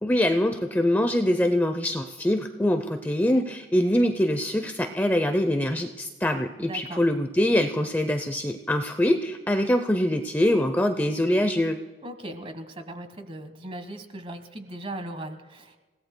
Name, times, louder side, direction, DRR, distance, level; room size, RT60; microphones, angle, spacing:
voice 1, 0.0-11.8, left 1 dB, 10° left, 6 dB, 0.5 m, -24 dB
voice 2, 6.6-7.0 12.0-15.8, right 1 dB, 30° right, 8 dB, 1.3 m, -38 dB
29.0 x 17.5 x 2.2 m, 1.3 s
head